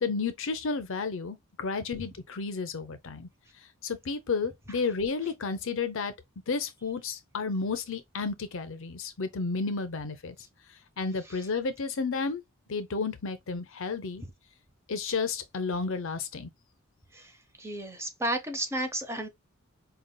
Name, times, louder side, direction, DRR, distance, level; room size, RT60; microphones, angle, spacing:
voice 1, 0.0-3.3 3.8-6.1 6.5-10.3 11.0-12.4 12.7-14.2 14.9-16.5, left 4 dB, 65° left, 0.6 m, -32 dB
voice 2, 17.6-19.3, right 1 dB, 15° right, 0.8 m, -32 dB
5.2 x 2.4 x 2.2 m
head